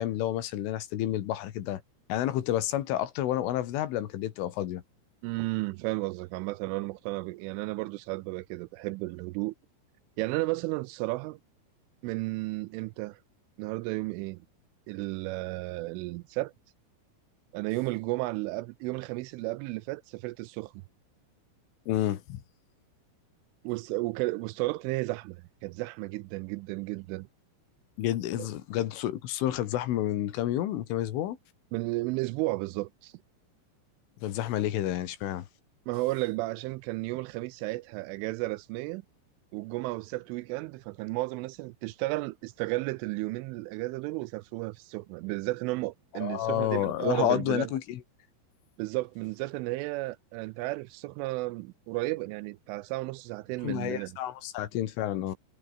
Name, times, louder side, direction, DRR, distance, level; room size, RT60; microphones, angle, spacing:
voice 1, 0.0-1.8 2.1-4.8 21.9-22.4 28.0-31.4 34.2-35.5 46.1-48.0 53.6-55.4, left 12 dB, 75° left, 4.2 m, -30 dB
voice 2, 5.2-9.5 10.2-11.4 12.0-13.2 13.6-14.4 14.9-16.5 17.5-20.7 23.6-27.3 28.4-28.5 31.7-33.1 35.9-39.0 39.5-47.7 48.8-54.1, right 21 dB, 80° right, 2.9 m, -33 dB
omnidirectional pair, 5.9 m